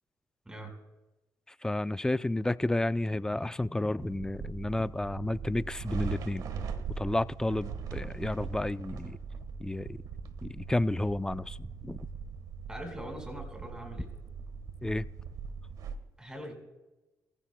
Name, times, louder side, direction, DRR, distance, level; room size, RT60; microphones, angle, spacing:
voice 1, 1.6-6.5 7.0-9.2 9.6-10.0 10.4-12.0 14.8-15.1, left 1 dB, 10° left, 0.4 m, -31 dB
sound 1, 4.0-15.9, right 6 dB, 75° right, 1.3 m, -40 dB
voice 2, 12.7-14.1 16.2-16.5, equal, 10° right, 4.7 m, -42 dB
23.0 x 15.0 x 2.2 m
cardioid pair, 90°, 7 cm